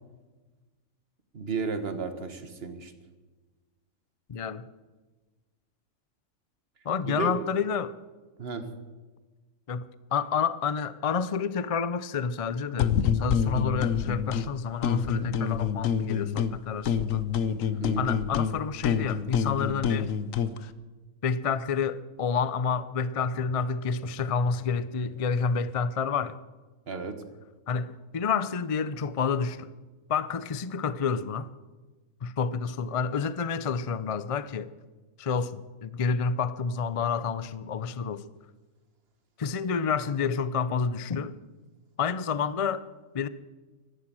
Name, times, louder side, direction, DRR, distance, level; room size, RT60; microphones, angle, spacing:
voice 1, 1.3-2.9 7.1-7.4 8.4-8.7 17.8-18.1 26.9-27.2, right 5 dB, 45° right, 1.7 m, -33 dB
voice 2, 4.3-4.7 6.8-8.0 9.7-17.3 18.0-20.1 21.2-26.4 27.7-29.7 30.1-31.5 32.2-34.7 35.2-38.2 39.4-41.4 42.0-42.8 43.1-43.3, left 5 dB, 45° left, 0.4 m, -29 dB
sound 1, 12.8-14.5 14.8-16.6 16.9-20.6, left 8 dB, 70° left, 1.2 m, -27 dB
14.5 x 12.5 x 7.7 m
omnidirectional pair, 1.5 m